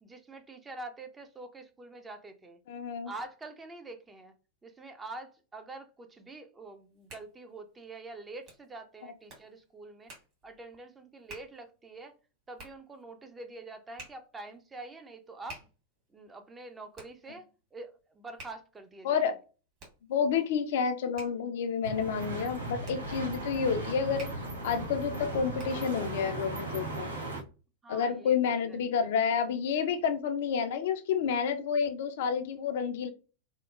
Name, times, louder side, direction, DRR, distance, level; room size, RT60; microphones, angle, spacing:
voice 1, 0.0-2.6 3.0-4.3 4.6-10.1 10.4-12.1 12.5-15.6 16.1-19.3 27.8-28.8, right 2 dB, 15° right, 0.4 m, -46 dB
voice 2, 2.7-3.1 19.0-19.3 20.1-24.3 24.6-27.1 27.9-33.1, left 6 dB, 55° left, 0.3 m, -29 dB
Hands, 6.7-26.0, right 2 dB, 40° right, 1.3 m, -54 dB
sound 1, 21.8-27.4, right 2 dB, 75° right, 0.6 m, -37 dB
2.8 x 2.0 x 2.3 m
figure-of-eight pair, 90°, 0 cm